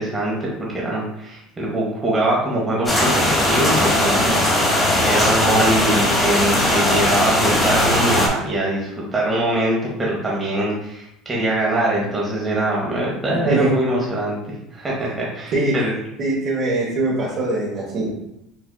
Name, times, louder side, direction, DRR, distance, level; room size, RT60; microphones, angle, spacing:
voice 1, 0.0-3.2 3.5-14.4 14.7-15.9, right 1 dB, 15° right, -4 dB, 0.8 m, -23 dB
sound 1, 2.9-8.3, left 1 dB, 20° left, 0.9 m, -18 dB
voice 2, 16.2-18.1, right 2 dB, 40° right, -6 dB, 1.0 m, -22 dB
4.8 x 2.6 x 2.3 m, 0.83 s
supercardioid pair, 130°, 0 cm